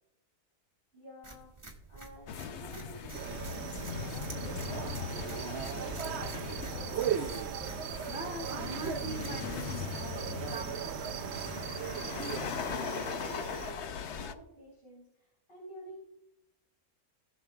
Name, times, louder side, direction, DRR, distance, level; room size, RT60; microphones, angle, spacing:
voice 1, 0.9-1.5 1.9-4.7 5.1-7.6 12.2-16.0, right 1 dB, 40° left, 4.2 m, -51 dB
sound 1, 1.2-13.2, right 3 dB, 20° right, 1.6 m, -49 dB
sound 2, 2.3-14.3, left 7 dB, 60° left, 0.8 m, -40 dB
sound 3, 3.1-13.7, right 10 dB, 70° right, 0.6 m, -38 dB
voice 2, 8.1-11.2, equal, 5° right, 2.1 m, -42 dB
19.0 x 6.6 x 2.3 m
omnidirectional pair, 1.6 m